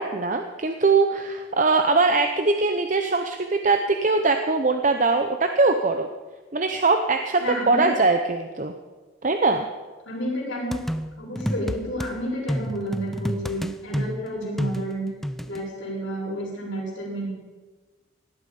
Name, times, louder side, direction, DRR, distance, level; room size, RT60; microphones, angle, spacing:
voice 1, 0.0-6.1 6.5-8.7 9.2-9.7, right 3 dB, 40° right, 6 dB, 0.7 m, -21 dB
voice 2, 7.4-7.9 10.1-10.8 11.2-15.1 15.5-17.3, equal, 80° left, -4 dB, 6.2 m, -30 dB
sound 1, 10.7-12.1 12.5-15.6, equal, ahead, 0.4 m, -29 dB
17.5 x 12.0 x 5.3 m, 1.3 s
head